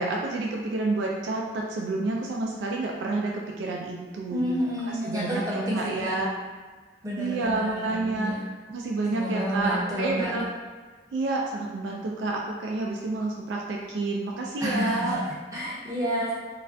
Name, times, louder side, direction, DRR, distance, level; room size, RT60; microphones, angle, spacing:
voice 1, 0.0-4.4 4.9-6.3 7.2-8.3 8.7-10.4 11.1-15.2, right 2 dB, 85° right, -1 dB, 0.3 m, -29 dB
voice 2, 4.3-6.2 7.0-8.4 9.1-10.3 14.6-16.4, equal, 20° right, -7 dB, 0.6 m, -30 dB
2.4 x 2.1 x 2.5 m, 1.4 s
head